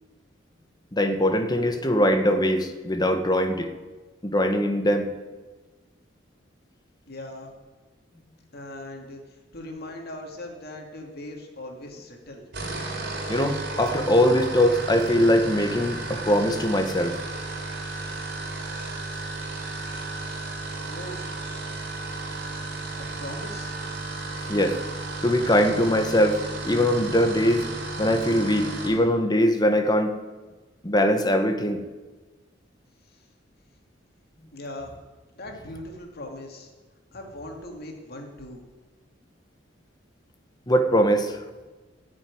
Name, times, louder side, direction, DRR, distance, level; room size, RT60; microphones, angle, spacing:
voice 1, 0.9-3.7 4.2-5.1 13.3-17.2 24.5-24.8 25.2-26.4 26.6-27.7 28.0-30.1 30.8-31.8 40.7-41.4, equal, 20° left, 7 dB, 1.1 m, -21 dB
voice 2, 7.1-7.5 8.5-12.4 20.8-21.2 23.0-23.8 33.1-33.3 34.5-34.9 35.4-36.7 37.1-38.6, left 1 dB, 55° left, 2 dB, 2.4 m, -40 dB
sound 1, 12.4-29.0, right 3 dB, 60° right, 3.3 m, -34 dB
14.0 x 6.4 x 9.7 m, 1.3 s
head